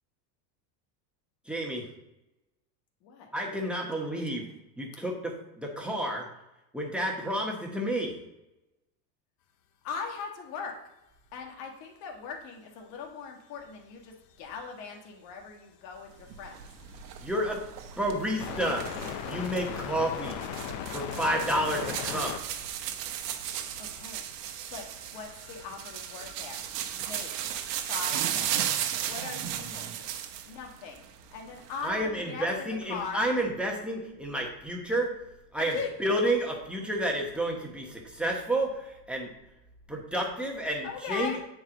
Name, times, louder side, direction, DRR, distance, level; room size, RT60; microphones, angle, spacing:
voice 1, 1.4-1.9 3.3-4.5 4.8-6.3 6.7-8.2 17.2-17.6 18.0-18.9 19.2-20.4 20.9-22.3 31.8-35.1 35.5-39.3 39.9-41.3, right 1 dB, ahead, -1 dB, 1.1 m, -30 dB
voice 2, 3.0-3.3 3.7-4.1 9.8-10.8 11.3-16.6 23.8-24.3 24.7-26.6 26.9-27.5 27.9-30.2 30.5-31.9 32.3-33.2 35.6-35.9 40.8-41.4, left 5 dB, 70° left, 2 dB, 1.6 m, -40 dB
sound 1, 14.3-14.4 17.5-17.6 18.4-27.9, left 9 dB, 40° left, 0.5 m, -40 dB
sound 2, 16.3-30.6 30.9-31.9, right 10 dB, 85° right, 1.0 m, -35 dB
8.0 x 4.7 x 3.8 m, 0.94 s
supercardioid pair, 135°, 48 cm